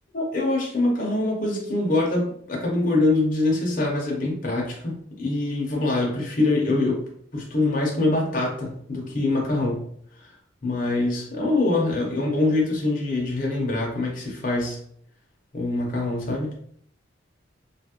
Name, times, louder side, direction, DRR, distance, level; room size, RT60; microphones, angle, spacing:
voice 1, 0.1-7.0 7.3-9.9 10.2-10.3 10.6-14.8 15.5-16.5, left 2 dB, 50° left, -2 dB, 0.8 m, -24 dB
2.8 x 2.4 x 2.9 m, 0.65 s
head